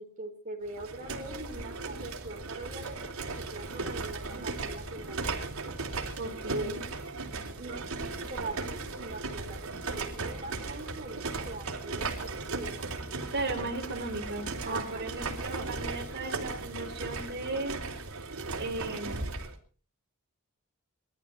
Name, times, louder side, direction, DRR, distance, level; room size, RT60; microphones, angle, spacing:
voice 1, 0.0-5.3 6.5-6.8 7.6-13.0 14.6-15.0, right 2 dB, 35° right, 1 dB, 4.2 m, -42 dB
sound 1, 0.7-19.5, right 3 dB, 80° right, 3.5 m, -37 dB
voice 2, 6.2-6.8 13.3-17.8 18.6-19.3, right 2 dB, 55° right, -3 dB, 3.4 m, -36 dB
22.0 x 14.0 x 4.2 m, 0.41 s
head